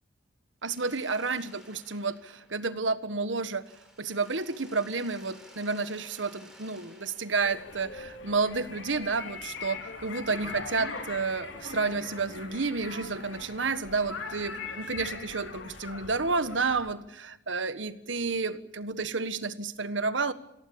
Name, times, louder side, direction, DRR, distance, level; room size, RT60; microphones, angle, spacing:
Mechanisms, 0.6-3.2 3.6-8.4, right 1 dB, 5° right, 6.1 m, -55 dB
voice 1, 0.6-3.6 4.0-20.3, right 4 dB, 85° right, 12 dB, 1.5 m, -30 dB
sound 1, 7.4-16.9, left 4 dB, 85° left, 4.0 m, -41 dB
27.0 x 17.5 x 8.8 m, 0.88 s
head